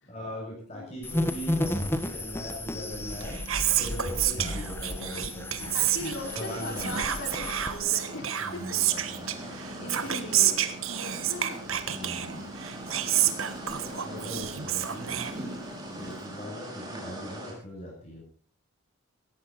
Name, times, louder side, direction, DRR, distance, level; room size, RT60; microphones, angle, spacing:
voice 1, 0.1-3.4 3.8-5.8 6.3-7.0 8.4-10.0 11.9-12.4 14.0-15.2 15.9-18.2, equal, 30° left, -3 dB, 7.4 m, -40 dB
sound 1, 1.0-7.8, left 1 dB, 10° left, 1.3 m, -33 dB
Whispering, 3.0-15.9, right 11 dB, 75° right, 1.5 m, -30 dB
voice 2, 5.7-8.8 9.2-11.6 13.6-14.3 15.1-15.5, left 1 dB, 60° left, 2 dB, 5.2 m, -41 dB
sound 2, 6.1-17.5, right 1 dB, 20° right, 5.3 m, -41 dB
18.5 x 15.0 x 4.2 m, 0.41 s
head